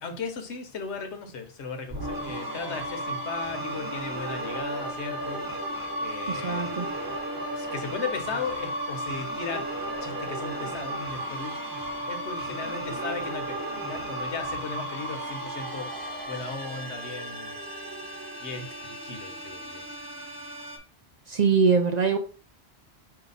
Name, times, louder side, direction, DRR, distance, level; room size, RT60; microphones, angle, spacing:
voice 1, 0.0-5.5 6.0-6.7 7.5-9.7 10.0-15.9 16.3-17.6 18.4-20.0, left 4 dB, 85° left, 1.1 m, -37 dB
sound 1, 1.9-20.8, right 1 dB, 20° right, 0.8 m, -34 dB
voice 2, 6.3-6.9 21.3-22.2, right 5 dB, 50° right, 0.6 m, -23 dB
4.7 x 2.8 x 3.9 m
omnidirectional pair, 1.1 m